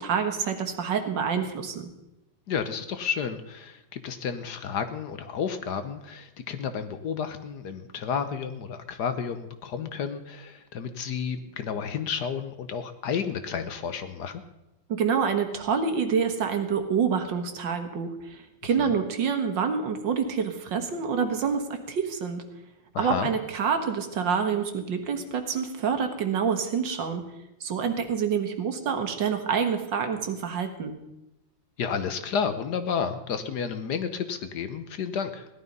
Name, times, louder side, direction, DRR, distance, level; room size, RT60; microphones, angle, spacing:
voice 1, 0.0-1.9 14.9-22.4 23.0-27.2 27.6-30.9, right 6 dB, 70° right, 6 dB, 2.1 m, -27 dB
voice 2, 2.5-14.4 18.8-18.9 22.9-23.3 31.8-35.5, left 6 dB, 65° left, 10 dB, 1.4 m, -31 dB
16.5 x 11.5 x 5.4 m, 0.95 s
omnidirectional pair, 2.1 m